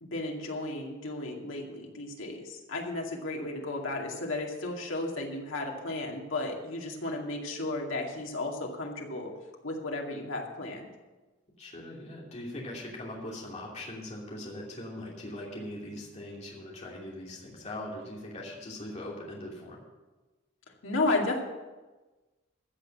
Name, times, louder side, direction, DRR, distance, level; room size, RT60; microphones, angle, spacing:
voice 1, 0.0-9.3 9.6-10.9 20.8-21.4, left 2 dB, 80° left, 0 dB, 2.4 m, -33 dB
voice 2, 11.6-19.8, left 1 dB, 35° left, -3 dB, 2.9 m, -41 dB
15.0 x 6.6 x 7.4 m, 1.2 s
head